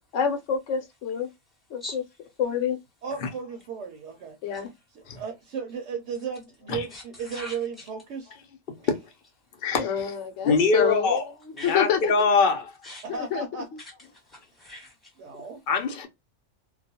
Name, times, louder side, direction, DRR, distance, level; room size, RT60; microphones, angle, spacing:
voice 1, 0.1-1.3 1.7-1.8 2.4-2.8 4.4-4.7 9.8-11.2 11.6-12.1 13.1-13.6, left 7 dB, 70° left, 1.0 m, -27 dB
voice 2, 3.0-4.6 4.9-8.3 13.0-13.7 15.2-15.6, right 6 dB, 70° right, 0.9 m, -35 dB
voice 3, 4.4-4.8 6.9-7.9 11.6-11.8 12.8-13.0 13.8-15.2, left 1 dB, ahead, 1.1 m, -43 dB
voice 4, 9.6-10.1 10.4-11.2 11.7-12.7 15.7-16.1, left 4 dB, 55° left, 0.7 m, -23 dB
2.3 x 2.2 x 2.7 m
omnidirectional pair, 1.3 m